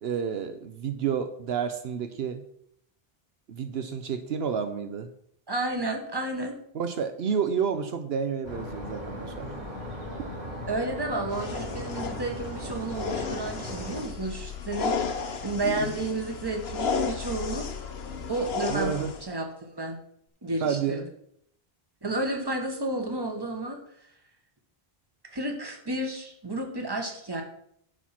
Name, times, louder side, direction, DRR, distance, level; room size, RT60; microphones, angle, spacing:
voice 1, 0.0-2.4 3.5-5.1 6.7-9.5 18.7-19.1 20.6-21.1, right 7 dB, 75° right, 9 dB, 0.9 m, -30 dB
voice 2, 5.5-6.6 10.7-17.7 18.3-18.9 19.2-20.0 20.4-21.0 22.0-23.8 25.3-27.4, right 2 dB, 25° right, 3 dB, 1.4 m, -31 dB
sound 1, 8.4-14.0, left 1 dB, 40° right, 2.9 m, -37 dB
sound 2, 11.3-19.3, left 5 dB, 80° left, 1.1 m, -33 dB
11.0 x 4.6 x 5.9 m, 0.71 s
omnidirectional pair, 1.0 m